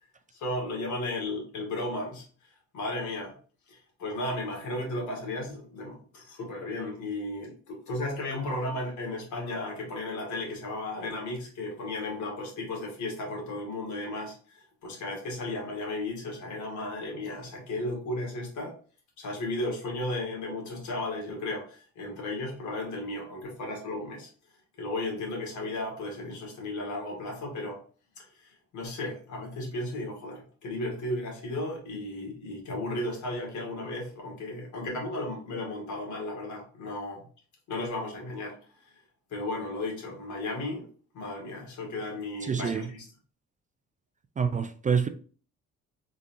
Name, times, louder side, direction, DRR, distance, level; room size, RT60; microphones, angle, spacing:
voice 1, 0.3-2.3 2.7-3.3 3.7-18.7 19.2-24.3 24.8-27.8 28.2-37.2 37.7-38.6 39.3-40.9 41.1-43.0, left 2 dB, 75° left, 2.0 m, -34 dB
voice 2, 42.4-42.9 44.4-45.1, right 6 dB, 25° right, 0.4 m, -27 dB
4.0 x 3.7 x 2.6 m
cardioid pair, 90°, 30 cm